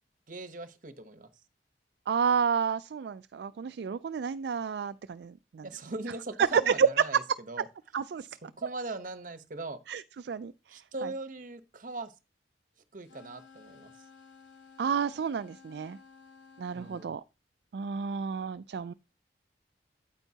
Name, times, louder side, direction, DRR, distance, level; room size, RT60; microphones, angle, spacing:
voice 1, 0.3-1.3 5.6-7.2 7.5-7.6 8.6-9.8 10.7-12.1 12.9-13.9 16.7-17.1, right 2 dB, 45° right, 1.0 m, -40 dB
voice 2, 2.1-5.7 6.4-6.9 7.9-8.3 9.9-11.1 14.8-16.0 16.6-17.2 17.7-18.9, right 6 dB, 65° right, 0.3 m, -30 dB
sound 1, 13.0-17.1, left 5 dB, 85° left, 2.2 m, -55 dB
9.0 x 8.8 x 2.8 m
head